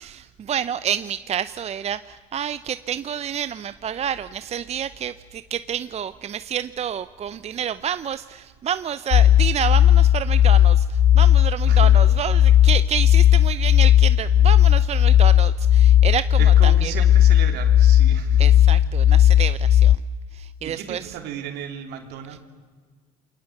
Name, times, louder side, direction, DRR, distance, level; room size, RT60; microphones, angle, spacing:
voice 1, 0.0-16.9 18.4-20.0 20.3-21.2, right 9 dB, 35° right, 14 dB, 0.7 m, -29 dB
sound 1, 9.1-20.0, left 11 dB, 50° left, 0.9 m, -15 dB
voice 2, 16.4-18.6 20.6-22.4, right 8 dB, 70° right, 5 dB, 3.5 m, -35 dB
28.5 x 22.5 x 8.2 m, 1.5 s
hypercardioid pair, 75°, 18 cm